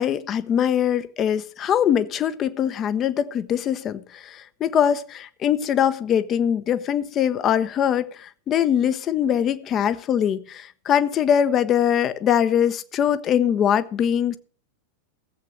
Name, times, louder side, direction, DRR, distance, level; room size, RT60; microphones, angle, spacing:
voice 1, 0.0-14.4, left 9 dB, 30° left, 12 dB, 0.9 m, -22 dB
16.0 x 8.0 x 6.1 m, 0.42 s
figure-of-eight pair, 90°, 0 cm